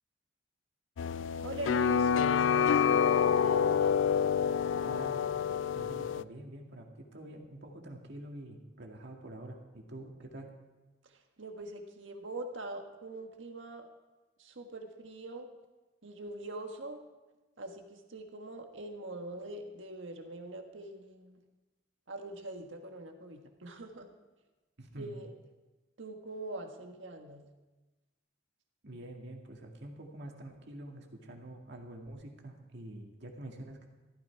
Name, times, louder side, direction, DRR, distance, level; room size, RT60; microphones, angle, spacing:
sound 1, 1.0-6.2, left 7 dB, 85° left, 0.4 m, -27 dB
voice 1, 1.4-3.9 11.0-11.1 11.4-13.9 14.4-15.5 16.0-17.0 17.6-21.4 22.1-24.1 25.0-25.3 26.0-27.4, right 2 dB, 85° right, 4 dB, 1.5 m, -43 dB
voice 2, 4.8-5.3 5.7-10.5 24.8-25.2 28.8-33.9, right 1 dB, 65° right, 1 dB, 2.1 m, -46 dB
14.5 x 13.5 x 4.7 m, 1.2 s
head